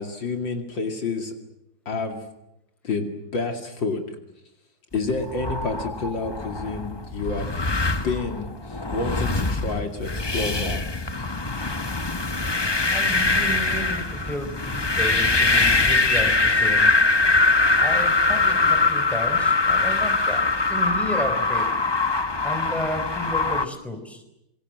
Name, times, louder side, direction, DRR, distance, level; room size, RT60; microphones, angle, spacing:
voice 1, 0.0-1.3 1.9-2.2 2.8-4.2 4.9-7.5 8.0-11.3, left 3 dB, 60° left, 5 dB, 3.1 m, -29 dB
sound 1, 5.1-23.6, left 3 dB, 25° left, 0.5 m, -22 dB
voice 2, 12.8-16.9 17.8-20.4 20.7-21.8 22.4-24.2, left 1 dB, ahead, 6 dB, 4.2 m, -32 dB
27.5 x 23.5 x 7.7 m, 0.85 s
omnidirectional pair, 2.3 m